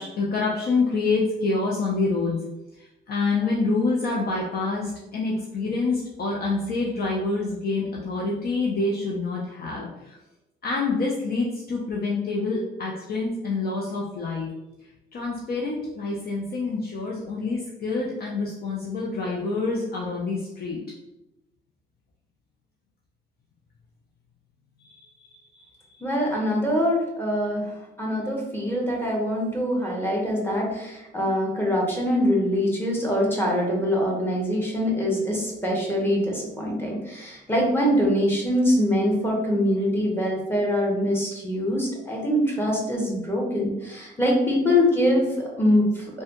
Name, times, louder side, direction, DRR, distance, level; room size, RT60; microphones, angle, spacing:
voice 1, 0.0-2.4 2.8-10.2 10.6-14.5 15.1-20.8 24.8-25.7, left 3 dB, 50° left, -3 dB, 0.5 m, -27 dB
voice 2, 26.0-46.2, equal, 10° left, -3 dB, 1.0 m, -24 dB
3.3 x 2.2 x 2.9 m, 0.97 s
cardioid pair, 90°, 20 cm